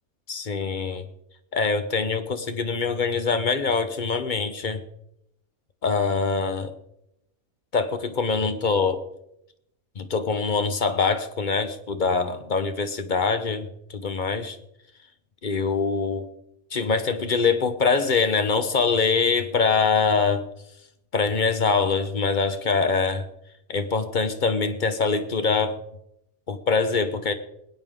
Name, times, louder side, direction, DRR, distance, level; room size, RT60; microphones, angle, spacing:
voice 1, 0.3-1.0 1.5-4.8 5.8-6.7 7.7-9.0 10.0-14.6 15.4-16.3 16.7-20.5 21.1-23.3 23.7-25.8 26.5-27.3, left 4 dB, 40° left, 10 dB, 0.9 m, -24 dB
21.0 x 9.6 x 3.7 m, 0.80 s
omnidirectional pair, 1.5 m